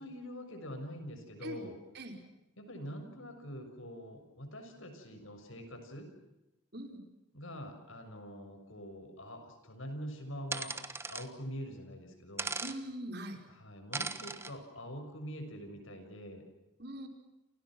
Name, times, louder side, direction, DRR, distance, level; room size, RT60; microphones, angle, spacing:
voice 1, 0.0-1.8 2.6-6.1 7.3-10.8 11.1-12.5 13.5-16.4, equal, 70° left, 7 dB, 6.4 m, -45 dB
sound 1, 10.5-11.3 12.4-12.8 13.9-14.5, right 3 dB, 10° right, 1.3 m, -37 dB
voice 2, 12.6-13.4 16.8-17.1, right 1 dB, 50° right, 5 dB, 4.9 m, -41 dB
30.0 x 28.5 x 6.2 m, 0.92 s
head